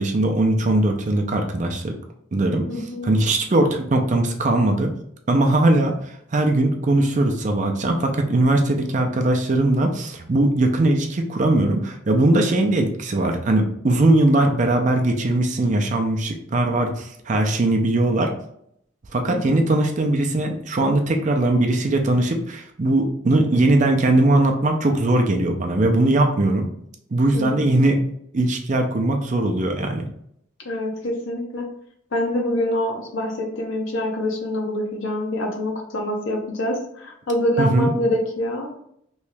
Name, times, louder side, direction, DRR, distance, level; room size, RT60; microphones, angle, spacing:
voice 1, 0.0-2.0 2.3-4.9 5.3-18.3 19.1-26.7 27.1-28.0 28.3-30.1 37.6-37.9, right 2 dB, 35° right, 4 dB, 0.4 m, -20 dB
voice 2, 2.7-3.1 19.3-19.7 27.3-27.7 30.6-31.7 32.1-38.8, left 1 dB, 80° left, 1 dB, 0.9 m, -25 dB
3.1 x 2.8 x 3.3 m, 0.71 s
head